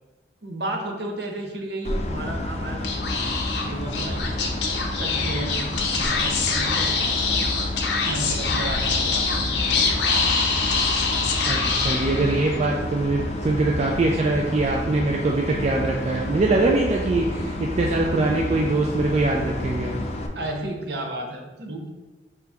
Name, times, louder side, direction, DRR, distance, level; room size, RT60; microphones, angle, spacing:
voice 1, 0.4-2.9 3.6-4.2 5.0-6.9 7.3-7.6 8.0-9.4 20.3-21.9, right 1 dB, 65° right, 2 dB, 0.7 m, -32 dB
sound 1, 1.8-20.3, left 1 dB, 35° left, 0.4 m, -30 dB
Speech / Whispering, 2.8-12.6, left 4 dB, 75° left, 0.6 m, -25 dB
voice 2, 11.5-19.9, right 2 dB, 40° right, -1 dB, 0.3 m, -23 dB
4.9 x 2.9 x 3.5 m, 1.2 s
head